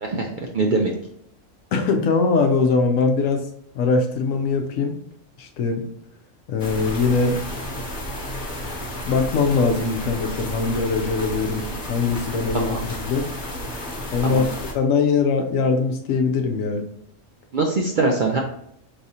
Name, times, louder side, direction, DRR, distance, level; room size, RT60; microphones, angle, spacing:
voice 1, 0.5-0.9 12.5-12.8 14.2-14.4 17.5-18.4, right 3 dB, 60° right, 0 dB, 0.5 m, -22 dB
voice 2, 1.7-3.5 3.7-5.0 5.4-5.9 6.5-7.4 9.0-11.6 11.9-13.3 14.1-14.5 14.7-16.8, left 4 dB, 80° left, 5 dB, 1.0 m, -21 dB
sound 1, 6.6-14.7, equal, 40° left, 1.2 m, -32 dB
4.8 x 3.3 x 2.7 m, 0.73 s
omnidirectional pair, 1.4 m